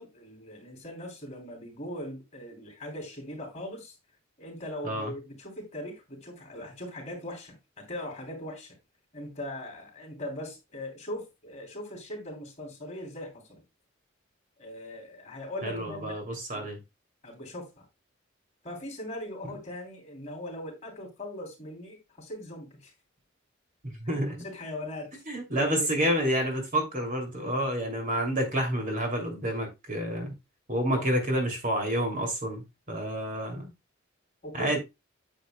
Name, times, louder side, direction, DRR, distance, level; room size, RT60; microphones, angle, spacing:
voice 1, 0.0-4.0 4.4-8.8 9.1-13.6 14.6-16.2 16.5-16.6 17.2-17.9 18.6-22.9 24.4-25.1 25.5-26.0 30.9-31.1 34.4-34.8, left 1 dB, 35° left, 3.1 m, -40 dB
voice 2, 15.6-16.8 23.8-24.4 25.3-30.3 30.7-33.7 34.6-34.8, equal, 40° right, 2.7 m, -29 dB
8.9 x 7.9 x 2.2 m
head